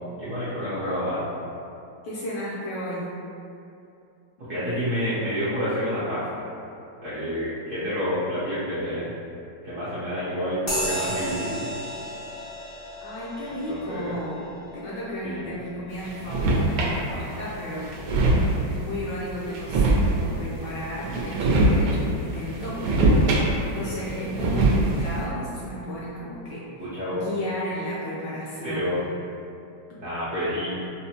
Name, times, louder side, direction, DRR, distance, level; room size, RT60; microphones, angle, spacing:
voice 1, 0.2-1.2 4.5-6.5 7.0-9.1 9.6-11.7 13.7-14.1 15.2-15.5 23.8-23.9 26.8-27.2 28.6-29.0 30.0-30.8, equal, 55° right, -13 dB, 0.9 m, -29 dB
voice 2, 2.0-3.1 13.0-14.5 14.7-17.9 18.7-23.3 23.7-26.7 27.1-29.0, equal, 70° left, -7 dB, 1.1 m, -33 dB
sound 1, 10.7-18.6, right 1 dB, 55° left, 0.5 m, -35 dB
sound 2, 16.0-17.0 17.5-17.6 17.8-18.8 19.5-20.5 21.0-22.0 22.3-23.8 24.1-25.1, right 2 dB, 90° right, 1.4 m, -22 dB
5.3 x 2.1 x 2.8 m, 2.6 s
omnidirectional pair, 2.2 m